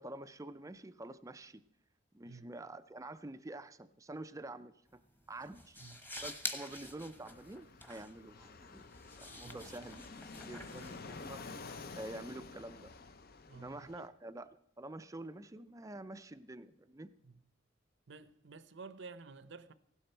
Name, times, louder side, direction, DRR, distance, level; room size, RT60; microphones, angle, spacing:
voice 1, 0.0-1.6 2.1-5.0 5.3-5.8 6.2-8.9 9.2-10.0 10.3-11.4 12.0-12.9 13.5-14.5 14.8-17.1, right 2 dB, 15° right, 0.5 m, -47 dB
sound 1, 4.9-11.7, left 1 dB, 10° left, 1.2 m, -48 dB
Fixed-wing aircraft airplane, 7.2-14.1, left 4 dB, 50° left, 0.7 m, -50 dB
voice 2, 13.5-14.1 17.2-17.4 18.1-19.7, right 4 dB, 65° right, 0.7 m, -51 dB
16.0 x 12.0 x 4.4 m
head